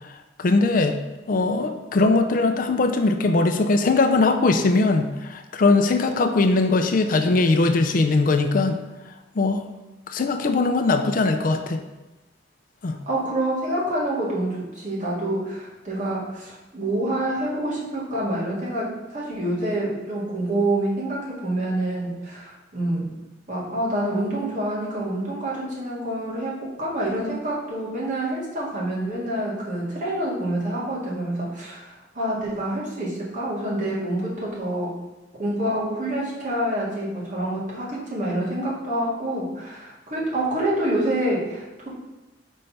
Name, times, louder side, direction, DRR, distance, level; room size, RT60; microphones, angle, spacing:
voice 1, 0.4-0.9 1.3-8.8 9.4-9.6 10.1-11.8 12.8-12.9, left 3 dB, 50° left, 6 dB, 0.5 m, -20 dB
voice 2, 13.1-23.1 23.5-35.0 35.4-41.9, right 1 dB, 45° right, -6 dB, 2.1 m, -27 dB
5.3 x 3.3 x 5.7 m, 1.1 s
head